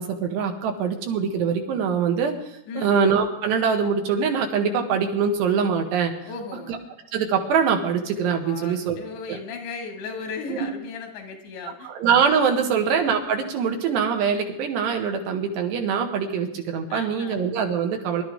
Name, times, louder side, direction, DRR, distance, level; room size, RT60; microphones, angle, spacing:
voice 1, 0.0-2.3 2.8-6.1 7.1-9.0 9.3-9.4 10.5-10.7 11.8-18.2, right 6 dB, 80° right, 3 dB, 3.9 m, -23 dB
voice 2, 2.7-3.0 6.3-6.7 8.4-11.9 12.6-12.9 16.9-17.4, left 5 dB, 90° left, 3 dB, 4.5 m, -36 dB
23.5 x 12.5 x 3.6 m, 0.83 s
omnidirectional pair, 4.9 m